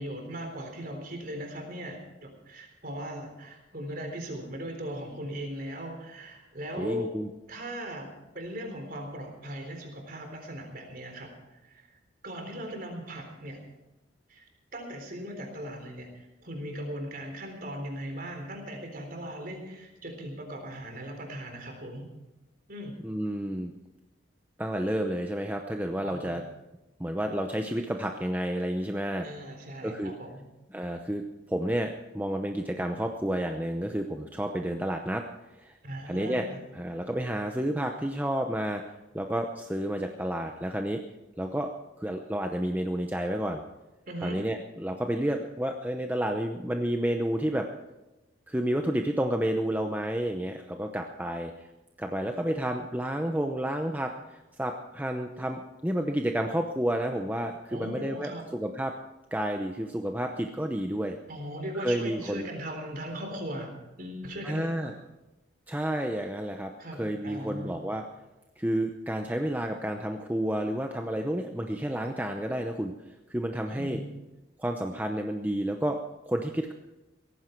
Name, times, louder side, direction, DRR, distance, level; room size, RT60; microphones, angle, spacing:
voice 1, 0.0-7.1 7.5-8.1 8.3-11.9 12.2-13.6 14.3-14.4 14.7-22.1 22.7-22.9 26.0-26.4 29.2-30.4 35.8-36.6 44.1-44.4 57.7-58.4 61.3-63.7 64.0-65.0 66.8-67.8 73.7-74.1, equal, 45° right, 3 dB, 3.9 m, -38 dB
voice 2, 6.8-7.3 23.0-23.7 24.6-26.4 27.0-29.3 29.8-30.1 30.7-31.2 31.5-35.2 35.6-35.8 36.1-36.5 36.7-38.8 39.1-41.0 41.4-41.7 42.0-43.6 44.2-47.7 48.5-51.7 52.0-58.9 59.3-61.2 61.7-62.5 64.4-64.9 65.7-68.0 68.6-72.9 73.3-74.0 74.6-76.0 76.3-76.7, right 1 dB, 10° right, 4 dB, 0.7 m, -30 dB
17.5 x 14.5 x 4.6 m, 1.0 s
head